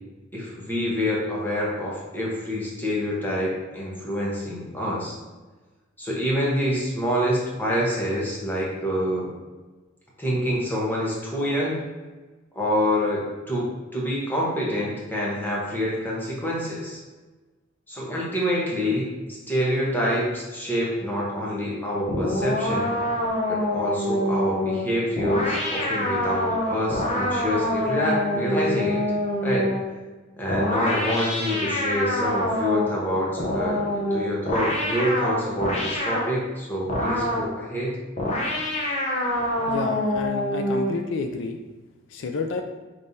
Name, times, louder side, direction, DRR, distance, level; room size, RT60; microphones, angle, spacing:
voice 1, 0.3-5.1 6.0-9.3 10.2-11.8 12.5-17.0 17.9-22.9 23.5-29.0 29.4-29.7 30.4-37.9, equal, 10° left, -5 dB, 1.0 m, -26 dB
sound 1, 22.1-29.9 30.5-33.0 33.4-36.3 36.9-37.5 38.2-41.0, left 1 dB, 35° left, 0.7 m, -26 dB
voice 2, 39.7-41.6 42.1-42.6, left 4 dB, 70° left, 4 dB, 0.4 m, -30 dB
5.2 x 3.2 x 2.7 m, 1.3 s
head